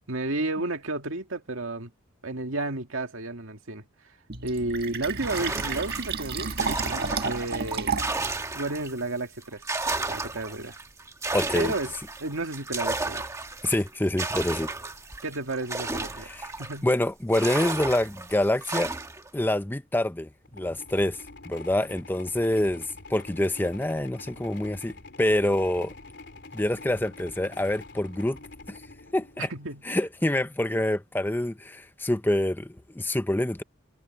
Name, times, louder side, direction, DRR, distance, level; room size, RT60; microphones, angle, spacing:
voice 1, 0.1-1.9 2.2-3.8 4.4-8.0 8.5-9.6 10.1-10.8 11.5-12.0 12.2-13.2 15.2-16.3 16.6-16.9 29.4-29.8, right 2 dB, 80° right, 2.1 m, -32 dB
Fill (with liquid), 4.3-8.3, right 5 dB, 50° right, 1.8 m, -31 dB
sound 1, 5.2-9.0 9.4-16.9 17.3-19.3, right 3 dB, 15° right, 1.2 m, -33 dB
voice 2, 11.3-11.7 13.6-14.7 16.3-16.5 16.8-18.9 19.3-25.9 26.5-28.4 28.7-28.8 29.1-29.5 29.9-33.6, left 1 dB, 10° left, 0.5 m, -26 dB
sound 2, 20.4-29.8, left 3 dB, 55° left, 3.8 m, -46 dB
head